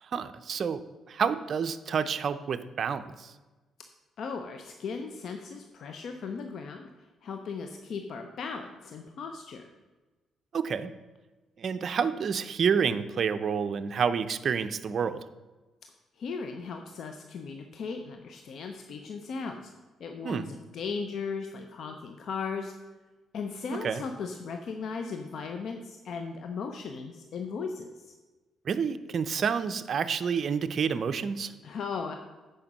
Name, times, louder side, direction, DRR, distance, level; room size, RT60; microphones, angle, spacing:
voice 1, 0.0-3.3 10.5-10.9 11.6-15.2 20.2-20.5 23.7-24.0 28.6-31.5, right 6 dB, 55° right, 11 dB, 0.5 m, -29 dB
voice 2, 4.2-6.9 7.2-9.6 16.2-19.7 20.0-22.7 23.3-28.1 31.6-32.1, left 5 dB, 65° left, 5 dB, 0.6 m, -37 dB
8.7 x 5.2 x 5.3 m, 1.2 s
cardioid pair, 90°, 0 cm